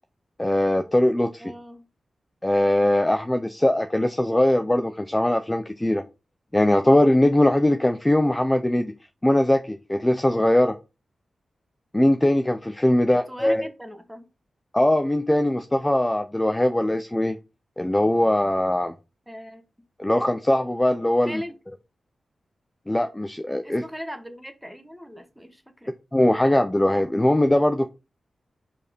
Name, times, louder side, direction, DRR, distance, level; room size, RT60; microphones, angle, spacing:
voice 1, 0.4-1.5 2.4-6.0 6.5-8.9 9.2-10.8 11.9-13.7 14.7-17.4 17.8-18.9 20.0-21.4 22.9-23.8 26.1-27.9, left 1 dB, 10° left, 0.5 m, -21 dB
voice 2, 1.4-1.9 12.9-14.3 19.3-19.6 21.2-21.6 23.6-25.9, equal, 5° right, 1.1 m, -39 dB
5.3 x 4.2 x 5.1 m
wide cardioid pair, 120°, 0 cm